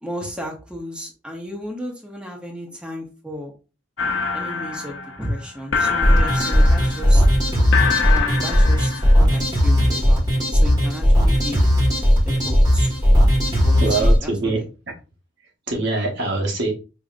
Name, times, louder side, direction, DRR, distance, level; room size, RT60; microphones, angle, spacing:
voice 1, 0.0-3.5 4.3-7.2 8.0-11.7 12.2-12.9 13.6-14.6, equal, 5° right, 0.8 m, -33 dB
sound 1, 4.0-9.2, left 5 dB, 75° left, 0.6 m, -25 dB
sound 2, 6.0-14.2, equal, 20° right, 1.6 m, -16 dB
voice 2, 13.7-14.6 15.7-16.7, right 3 dB, 65° right, 1.2 m, -23 dB
5.0 x 2.8 x 2.4 m
head